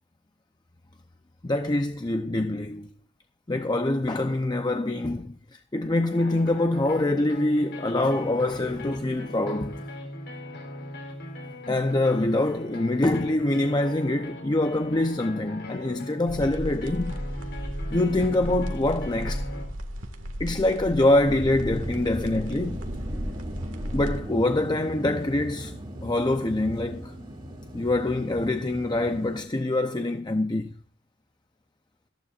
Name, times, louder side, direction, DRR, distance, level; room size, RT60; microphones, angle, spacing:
voice 1, 1.4-2.9 3.5-9.8 11.7-17.2 17.9-19.5 20.4-22.8 23.9-25.7 26.0-27.1 27.7-30.8, left 2 dB, 20° left, 0.7 m, -25 dB
sound 1, 6.1-19.7, left 1 dB, 55° left, 3.3 m, -40 dB
sound 2, 16.3-24.2, equal, 70° right, 1.9 m, -34 dB
sound 3, 21.3-29.4, equal, 25° right, 2.6 m, -38 dB
18.0 x 14.5 x 2.5 m
head